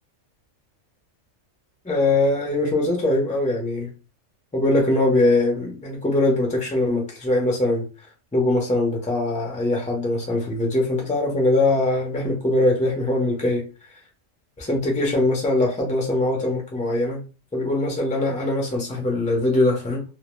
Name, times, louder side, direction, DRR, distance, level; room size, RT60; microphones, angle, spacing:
voice 1, 1.8-3.9 4.5-7.8 8.3-13.6 14.6-17.2 17.5-20.0, left 2 dB, 10° left, 0 dB, 0.4 m, -22 dB
2.1 x 2.1 x 3.0 m, 0.33 s
omnidirectional pair, 1.3 m